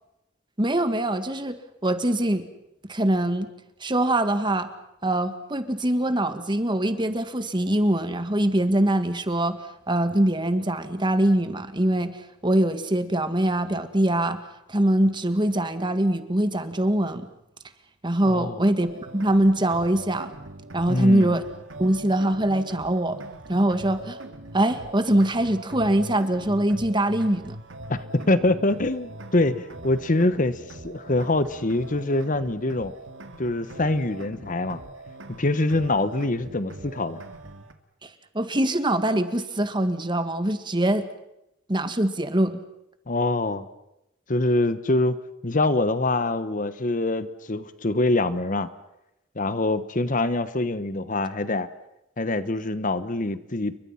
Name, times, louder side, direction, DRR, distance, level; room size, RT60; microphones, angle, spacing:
voice 1, 0.6-2.4 2.9-3.5 3.8-4.7 5.0-9.6 9.9-12.2 12.4-14.4 14.7-17.3 18.0-18.9 19.1-20.3 20.7-21.4 21.8-23.2 23.5-24.2 24.5-27.6 38.3-41.1 41.7-42.6, right 1 dB, 25° right, 10 dB, 1.7 m, -23 dB
voice 2, 18.2-18.6 20.9-21.3 27.9-32.9 33.4-34.8 35.4-37.2 43.1-43.7 44.3-45.2 45.4-48.7 49.4-51.7 52.2-53.8, left 2 dB, 45° left, 13 dB, 1.1 m, -24 dB
sound 1, 18.9-37.7, right 1 dB, 75° right, 2.3 m, -42 dB
29.5 x 23.5 x 5.8 m, 0.87 s
head